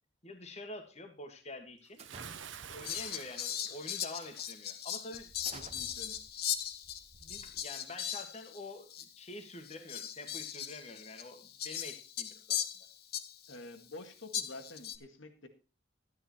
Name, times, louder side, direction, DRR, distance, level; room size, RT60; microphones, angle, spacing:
voice 1, 0.2-2.0 2.7-5.3 7.2-12.6, left 2 dB, 35° left, 4 dB, 1.7 m, -47 dB
sound 1, 2.0-2.8 3.6-3.9 4.3-4.5 5.1-8.0, right 3 dB, 35° right, 0.8 m, -54 dB
Bathtub (filling or washing) / Splash splatter, 2.0-4.5, right 7 dB, 75° right, 1.0 m, -49 dB
Fowl, 2.8-8.7 8.9-9.1 9.6-13.6 14.3-15.0, left 10 dB, 55° left, 1.0 m, -39 dB
voice 2, 5.5-6.2 13.5-15.5, left 2 dB, 80° left, 7 dB, 2.0 m, -48 dB
12.5 x 9.5 x 4.4 m, 0.33 s
head